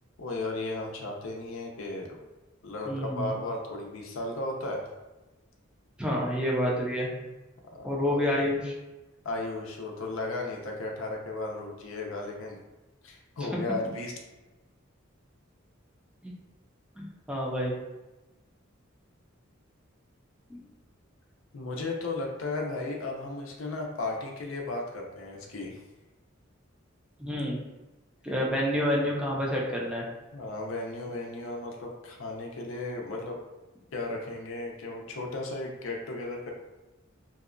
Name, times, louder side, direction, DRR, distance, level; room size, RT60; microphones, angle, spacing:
voice 1, 0.2-2.2 2.6-4.8 7.7-8.2 9.2-12.6 13.0-14.1 21.5-25.8 30.3-33.4 33.9-36.5, left 2 dB, 75° left, 0 dB, 0.5 m, -35 dB
voice 2, 2.9-3.3 6.0-7.1 7.8-8.7 16.2-16.3 17.0-17.8 20.5-20.6 27.2-27.6 28.2-30.0, equal, 5° right, -3 dB, 0.4 m, -28 dB
2.7 x 2.2 x 2.4 m, 1.1 s
head